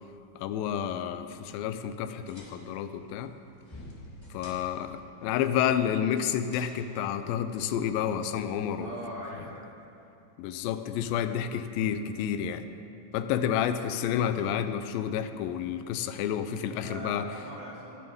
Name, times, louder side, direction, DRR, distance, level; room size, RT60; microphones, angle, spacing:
voice 1, 0.4-3.3 4.3-8.9 10.4-12.6 13.1-17.2, left 9 dB, 90° left, 10 dB, 2.4 m, -30 dB
sound 1, 2.0-8.0, left 1 dB, 10° left, 1.3 m, -51 dB
voice 2, 8.8-9.7 10.8-11.2 16.8-18.0, right 1 dB, 35° right, -7 dB, 3.2 m, -42 dB
21.0 x 7.0 x 5.2 m, 2.8 s
omnidirectional pair, 4.0 m